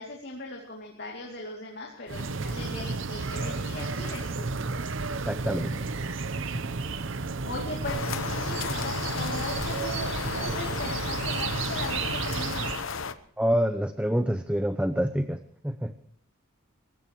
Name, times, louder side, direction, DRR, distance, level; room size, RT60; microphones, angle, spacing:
voice 1, 0.0-4.5 7.2-12.7, left 2 dB, 50° left, -1 dB, 2.6 m, -39 dB
sound 1, 2.1-12.8, right 4 dB, 60° right, 0.8 m, -32 dB
voice 2, 5.3-5.8 13.4-15.9, equal, 5° right, 9 dB, 0.6 m, -27 dB
sound 2, 7.8-13.1, left 5 dB, 65° left, 1.0 m, -34 dB
25.0 x 15.5 x 3.1 m, 0.62 s
head